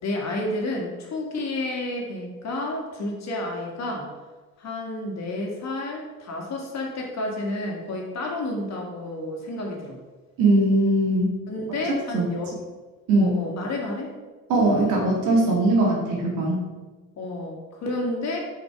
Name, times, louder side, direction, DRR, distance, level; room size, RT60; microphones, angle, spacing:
voice 1, 0.0-4.1 4.6-10.0 11.5-12.6 13.2-14.1 17.2-18.4, left 2 dB, 50° left, 0 dB, 2.0 m, -30 dB
voice 2, 10.4-11.4 12.1-12.3 13.1-13.4 14.5-16.6, right 2 dB, 75° right, -1 dB, 2.1 m, -20 dB
5.4 x 5.0 x 4.7 m, 1.3 s
supercardioid pair, 80°, 33 cm